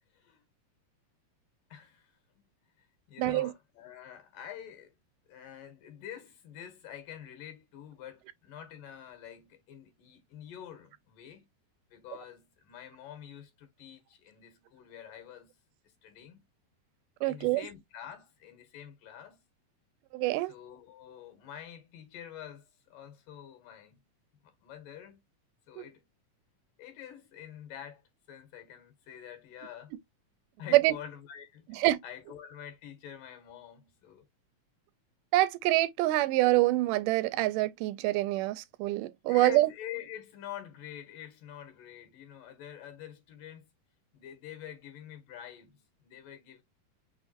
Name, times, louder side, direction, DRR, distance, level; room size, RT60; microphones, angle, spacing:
voice 1, 0.1-0.4 1.7-2.5 2.8-4.9 5.3-11.5 11.9-15.6 15.8-16.5 17.2-19.5 20.4-24.1 24.4-25.2 25.7-26.1 26.8-28.0 28.3-30.0 30.6-34.3 39.3-43.7 44.1-46.6, left 10 dB, 90° left, 3.2 m, -47 dB
voice 2, 3.2-3.5 17.2-17.6 20.1-20.5 30.7-31.0 31.7-32.0 35.3-39.7, right 17 dB, 85° right, 2.1 m, -26 dB
5.9 x 3.1 x 2.7 m
omnidirectional pair, 3.7 m